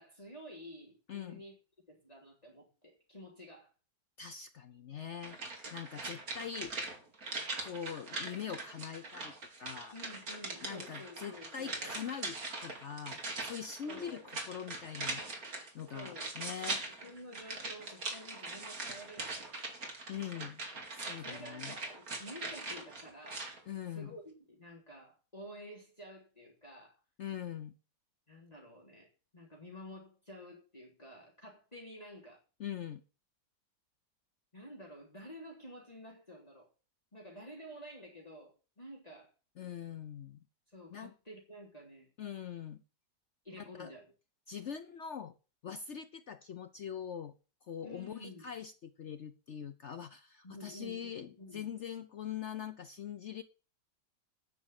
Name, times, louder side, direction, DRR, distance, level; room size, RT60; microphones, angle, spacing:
voice 1, 0.0-1.6 1.9-3.7 9.9-11.9 13.8-14.3 15.9-16.3 17.0-19.8 21.2-23.5 23.9-27.0 28.3-29.1 29.3-32.4 34.5-36.7 37.1-39.3 40.7-42.1 43.4-44.1 47.8-48.5 50.4-51.7, equal, 20° left, -3 dB, 3.6 m, -51 dB
voice 2, 1.1-1.4 4.2-5.4 5.7-6.7 7.6-9.3 9.6-9.9 10.6-15.5 15.7-16.8 20.1-20.6 20.9-21.8 23.7-24.2 27.2-27.7 32.6-33.0 39.6-40.4 40.9-41.1 42.2-42.8 43.5-43.9 44.5-45.4 45.6-47.3 47.7-53.4, left 8 dB, 65° left, 10 dB, 0.7 m, -43 dB
sound 1, 5.2-23.6 23.9-24.0, right 3 dB, 55° right, 2.8 m, -42 dB
9.6 x 6.2 x 8.3 m, 0.33 s
omnidirectional pair, 1.9 m